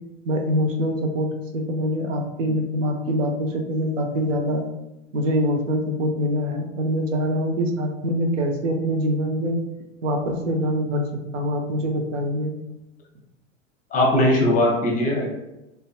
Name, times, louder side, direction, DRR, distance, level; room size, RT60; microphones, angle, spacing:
voice 1, 0.2-4.6 5.1-9.6 10.0-11.0 11.3-12.5, equal, 80° right, 3 dB, 0.6 m, -24 dB
voice 2, 13.9-15.3, left 1 dB, 20° left, -1 dB, 0.6 m, -19 dB
2.5 x 2.2 x 2.4 m, 0.95 s
figure-of-eight pair, 90°, 37 cm